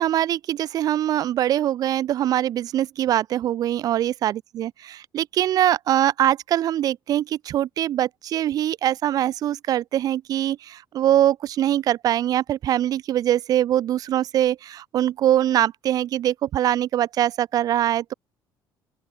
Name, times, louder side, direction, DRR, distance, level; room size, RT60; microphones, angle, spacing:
voice 1, 0.0-18.1, right 12 dB, 50° right, 4.7 m, -23 dB
open air
cardioid pair, 175°, 8 cm